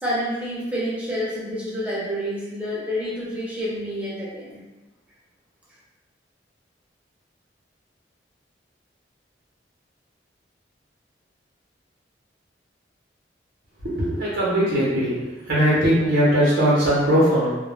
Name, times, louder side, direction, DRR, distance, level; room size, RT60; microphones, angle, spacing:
voice 1, 0.0-4.6, equal, 5° right, -8 dB, 0.6 m, -28 dB
voice 2, 13.8-17.5, equal, 80° right, -8 dB, 0.7 m, -20 dB
2.1 x 2.0 x 3.1 m, 1.2 s
head